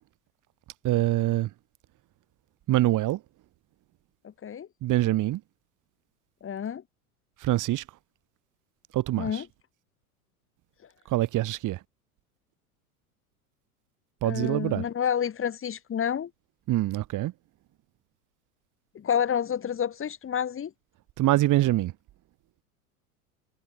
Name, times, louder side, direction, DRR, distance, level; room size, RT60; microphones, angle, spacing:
voice 1, 0.8-1.5 2.7-3.2 4.8-5.4 7.4-7.8 8.9-9.4 11.1-11.8 14.2-14.8 16.7-17.3 21.2-21.9, right 16 dB, 45° right, 6.3 m, -24 dB
voice 2, 4.2-4.7 6.4-6.8 9.2-9.5 14.2-16.3 19.0-20.7, left 8 dB, 30° left, 6.9 m, -29 dB
hypercardioid pair, 90°, 44 cm